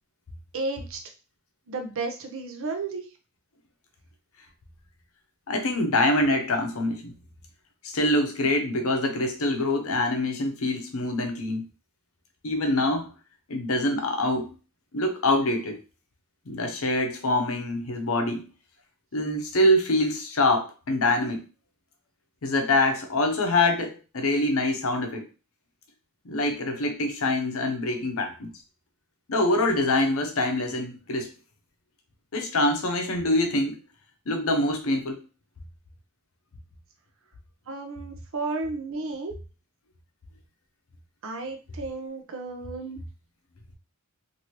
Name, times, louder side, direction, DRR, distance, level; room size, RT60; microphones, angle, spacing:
voice 1, 0.5-1.0 1.7-3.0 37.7-39.3 41.2-43.0, right 3 dB, 65° right, 5 dB, 0.6 m, -33 dB
voice 2, 5.5-7.1 7.8-11.6 12.4-13.1 13.5-14.5 14.9-15.8 16.5-18.4 19.1-21.4 22.4-25.3 26.2-28.5 29.3-31.3 32.3-33.8 34.3-35.2, left 1 dB, 70° left, 5 dB, 0.7 m, -25 dB
2.9 x 2.6 x 2.9 m, 0.32 s
head